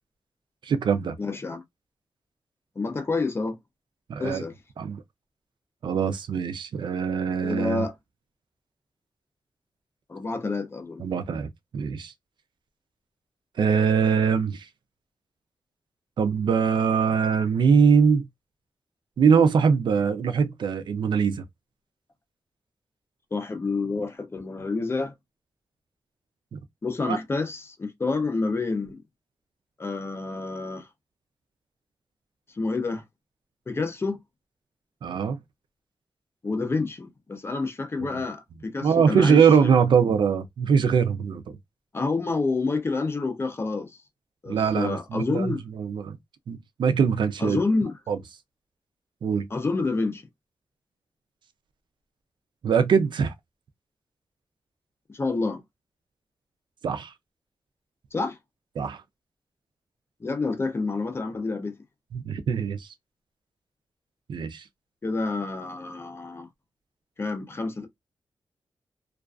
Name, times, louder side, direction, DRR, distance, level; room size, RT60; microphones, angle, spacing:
voice 1, 0.6-1.2 4.1-4.4 4.8-5.0 5.8-7.8 11.0-12.1 13.6-14.7 16.2-18.3 19.2-21.4 26.5-26.6 27.1-27.2 35.0-35.4 38.0-38.2 38.8-41.6 44.5-46.2 46.5-47.6 48.1-48.2 49.2-49.5 52.6-53.3 56.8-57.1 58.8-59.0 62.1-62.9 64.3-64.6, right 6 dB, 70° right, 0.4 m, -22 dB
voice 2, 1.2-1.6 2.8-3.6 4.2-4.5 7.4-7.9 10.1-11.1 23.3-25.1 26.8-29.0 29.8-30.9 32.6-33.0 33.7-34.2 36.4-39.4 41.9-44.0 44.4-45.6 47.4-48.0 49.5-50.2 55.1-55.6 58.1-58.4 60.2-61.7 65.0-66.5 67.2-67.9, left 3 dB, 30° left, 0.5 m, -28 dB
2.4 x 2.2 x 2.3 m
wide cardioid pair, 140°, 8 cm